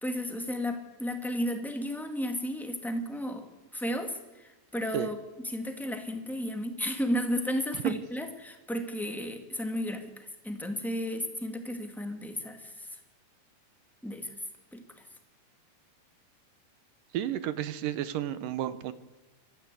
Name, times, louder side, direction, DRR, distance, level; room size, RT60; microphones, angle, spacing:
voice 1, 0.0-3.5 3.7-5.2 5.4-12.9 14.0-14.3 14.7-14.8, equal, ahead, 4 dB, 1.3 m, -33 dB
voice 2, 17.1-18.9, right 11 dB, 80° right, 14 dB, 2.6 m, -31 dB
25.0 x 14.0 x 8.4 m, 1.1 s
omnidirectional pair, 3.8 m